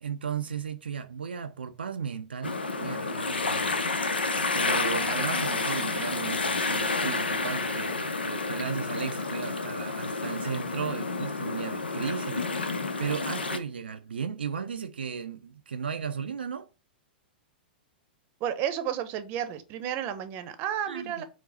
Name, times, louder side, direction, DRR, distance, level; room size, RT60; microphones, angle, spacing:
voice 1, 0.0-3.7 4.5-16.7 20.9-21.2, right 7 dB, 85° right, 0.4 m, -35 dB
sound 1, 2.4-13.6, left 3 dB, 90° left, 0.5 m, -30 dB
voice 2, 18.4-21.2, right 10 dB, 40° right, 0.7 m, -32 dB
4.7 x 2.0 x 4.1 m
hypercardioid pair, 105°, 5 cm